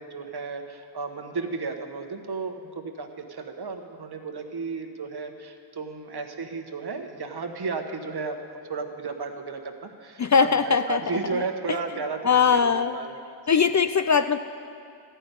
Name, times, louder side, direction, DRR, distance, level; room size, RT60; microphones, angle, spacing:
voice 1, 0.0-8.4 8.7-13.2 13.5-13.6, right 4 dB, 55° right, 4 dB, 1.2 m, -34 dB
voice 2, 10.2-11.4 11.7-11.8 12.2-13.0 13.5-14.4, left 6 dB, 40° left, 10 dB, 0.4 m, -21 dB
13.5 x 5.7 x 9.1 m, 2.4 s
cardioid pair, 65°, 48 cm